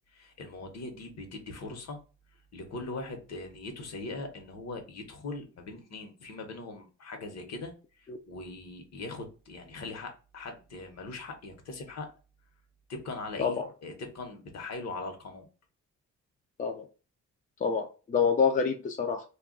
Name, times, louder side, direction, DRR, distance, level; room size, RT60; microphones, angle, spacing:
voice 1, 0.1-2.0 2.5-12.1 12.9-15.5, left 3 dB, 60° left, 5 dB, 1.0 m, -41 dB
voice 2, 17.6-19.2, left 6 dB, 25° left, 4 dB, 0.4 m, -27 dB
2.3 x 2.2 x 3.7 m, 0.33 s
cardioid pair, 90°, 30 cm